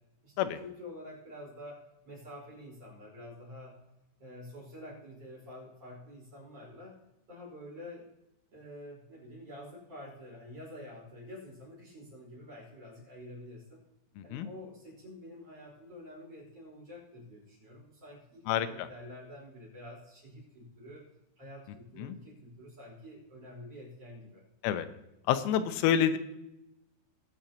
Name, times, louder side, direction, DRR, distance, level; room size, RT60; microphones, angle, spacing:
voice 1, 0.2-3.8 4.2-7.0 7.3-8.1 8.5-13.8 14.2-21.1 21.4-24.4, left 1 dB, 30° right, -4 dB, 5.8 m, -48 dB
voice 2, 14.2-14.5 18.5-18.9 22.0-22.2 24.6-24.9 25.3-26.2, left 9 dB, 90° left, 10 dB, 3.4 m, -28 dB
22.0 x 7.9 x 2.9 m, 0.90 s
omnidirectional pair, 6.0 m